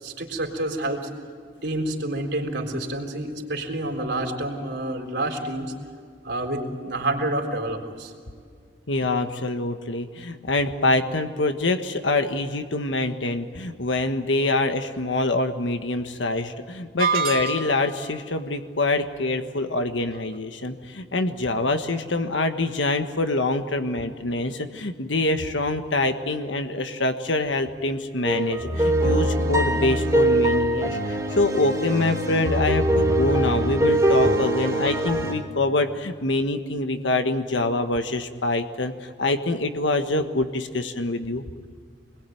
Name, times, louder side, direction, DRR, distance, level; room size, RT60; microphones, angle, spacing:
voice 1, 0.0-1.1 1.6-5.8 6.2-8.1, right 1 dB, 70° right, 3 dB, 3.9 m, -28 dB
voice 2, 8.9-41.4, left 2 dB, 85° left, 7 dB, 1.5 m, -25 dB
sound 1, 17.0-18.0, right 4 dB, 50° right, 3.0 m, -25 dB
sound 2, 28.3-35.3, right 1 dB, 20° right, 3.0 m, -22 dB
27.5 x 21.0 x 9.3 m, 2.1 s
head